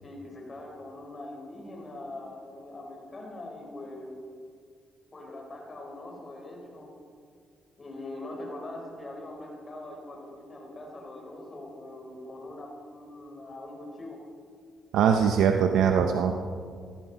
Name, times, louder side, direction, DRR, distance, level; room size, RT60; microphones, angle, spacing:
voice 1, 0.0-4.1 5.1-6.9 7.8-14.2, left 1 dB, 30° left, -1 dB, 4.3 m, -42 dB
voice 2, 14.9-16.3, right 7 dB, 80° right, 5 dB, 0.7 m, -22 dB
17.0 x 13.5 x 4.1 m, 2.2 s
cardioid pair, 90°, 0 cm